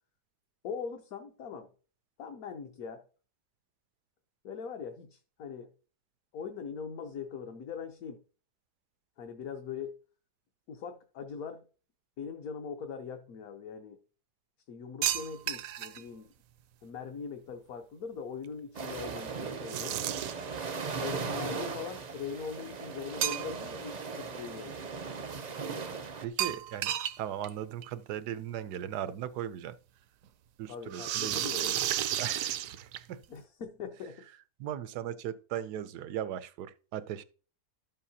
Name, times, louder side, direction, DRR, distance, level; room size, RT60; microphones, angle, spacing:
voice 1, 0.6-1.7 2.2-3.0 4.4-5.7 6.3-8.2 9.2-10.0 10.7-11.6 12.2-14.0 14.7-16.3 16.8-20.0 21.0-24.8 30.7-31.8 33.3-34.3, left 6 dB, 65° left, 1.3 m, -41 dB
sound 1, 15.0-16.0 19.7-20.5 23.2-23.8 24.2-24.3 26.4-27.2 27.4-27.5 27.8-27.9 29.1-29.2 30.9-33.2, right 12 dB, 70° right, 0.9 m, -32 dB
sound 2, 18.7-26.3, right 5 dB, 45° right, 0.5 m, -38 dB
voice 2, 26.2-29.8 30.6-31.7 32.2-33.2 34.6-37.2, right 10 dB, 85° right, 1.2 m, -38 dB
12.0 x 7.5 x 2.8 m
omnidirectional pair, 1.7 m